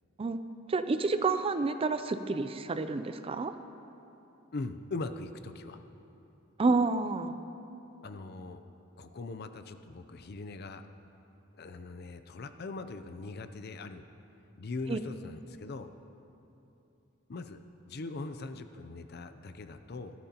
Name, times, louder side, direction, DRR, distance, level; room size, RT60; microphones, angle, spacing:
voice 1, 0.7-3.5 6.6-7.4 14.9-15.0, right 3 dB, 30° right, 10 dB, 0.4 m, -29 dB
voice 2, 4.5-5.8 8.0-8.6 9.0-10.8 11.6-14.0 14.6-15.9 17.3-17.6 17.9-20.1, left 3 dB, 50° left, 9 dB, 0.5 m, -41 dB
19.0 x 12.5 x 2.9 m, 2.9 s
head